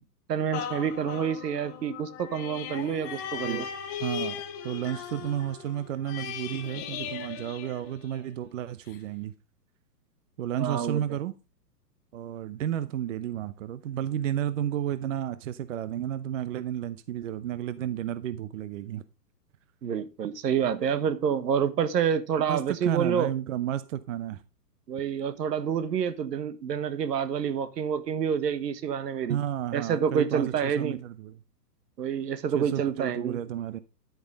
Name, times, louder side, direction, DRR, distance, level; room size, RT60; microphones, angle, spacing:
voice 1, 0.3-3.7 10.6-11.0 19.8-23.3 24.9-29.4 29.7-31.0 32.0-33.4, right 7 dB, 80° right, 1.5 m, -28 dB
sound 1, 0.5-8.4 8.9-9.0, left 8 dB, 10° left, 0.5 m, -38 dB
voice 2, 4.0-9.3 10.4-11.3 12.1-19.0 22.5-24.4 29.3-31.4 32.5-33.8, right 11 dB, 50° right, 0.8 m, -32 dB
10.5 x 9.2 x 3.4 m
hypercardioid pair, 155°, 48 cm